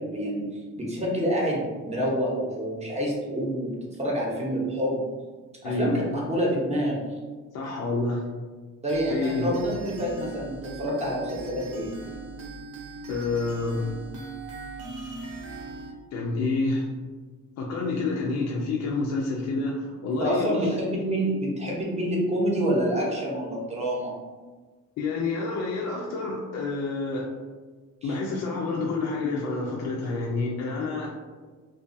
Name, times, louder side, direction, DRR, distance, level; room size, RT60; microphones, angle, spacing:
voice 1, 0.0-3.7 4.0-5.0 5.6-7.0 8.8-11.9 20.2-24.1 28.0-28.2, equal, 20° right, -3 dB, 0.8 m, -27 dB
voice 2, 5.6-6.0 7.5-8.2 9.1-9.5 13.1-13.9 16.1-16.9 17.6-20.6 25.0-27.3 28.0-31.1, left 3 dB, 65° left, -3 dB, 0.5 m, -28 dB
sound 1, 8.9-15.9, right 2 dB, 85° right, 0.6 m, -39 dB
2.3 x 2.3 x 2.6 m, 1.4 s
cardioid pair, 90°, 30 cm